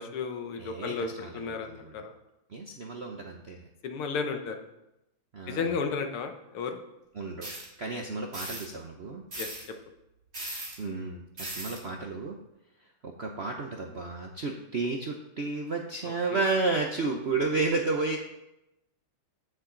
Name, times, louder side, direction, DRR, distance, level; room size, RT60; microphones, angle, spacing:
voice 1, 0.0-2.1 3.8-4.6 5.5-6.8 9.4-9.5, left 5 dB, 85° left, 6 dB, 2.0 m, -33 dB
voice 2, 0.6-2.1 2.5-3.7 5.3-5.7 7.1-7.5 7.8-9.2 10.8-12.4 13.0-18.2, right 3 dB, 60° right, 1 dB, 0.6 m, -32 dB
sound 1, 7.4-7.6 8.3-8.6 9.3-9.6 10.3-10.7 11.4-11.8, right 1 dB, 30° right, 2.9 m, -37 dB
14.5 x 7.3 x 3.9 m, 0.90 s
omnidirectional pair, 2.3 m